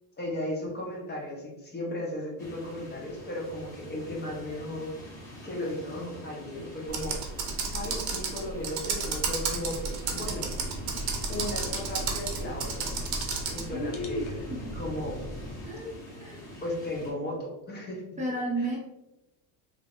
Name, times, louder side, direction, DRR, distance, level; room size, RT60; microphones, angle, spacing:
voice 1, 0.2-4.9 5.4-7.2 7.7-10.5 11.3-12.8 13.5-15.2 16.6-18.0 18.6-18.7, left 1 dB, 25° left, -2 dB, 0.8 m, -35 dB
sound 1, 2.4-17.1, equal, 5° left, 1.4 m, -45 dB
Computer keyboard, 6.9-13.7, right 4 dB, 60° right, 0.7 m, -32 dB
sound 2, 10.1-15.7, left 1 dB, 80° left, 0.7 m, -41 dB
voice 2, 13.7-14.2 15.6-16.4 18.2-18.8, right 1 dB, 20° right, -3 dB, 0.6 m, -32 dB
3.3 x 2.0 x 2.4 m, 0.95 s
supercardioid pair, 95°, 40 cm